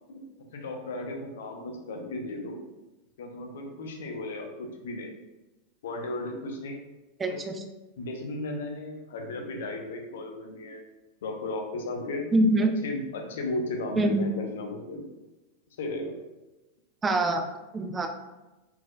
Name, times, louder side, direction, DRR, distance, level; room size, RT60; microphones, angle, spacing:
voice 1, 0.1-2.6 3.2-5.1 5.8-6.8 7.3-7.4 8.0-10.8 11.2-12.3 12.8-15.1 15.8-16.2, left 2 dB, 60° left, 2 dB, 0.7 m, -35 dB
voice 2, 7.2-7.6 12.3-12.7 14.0-14.3 17.0-17.4 17.7-18.1, right 2 dB, 15° right, 6 dB, 0.5 m, -24 dB
4.2 x 4.2 x 2.3 m, 1.1 s
figure-of-eight pair, 90°, 0 cm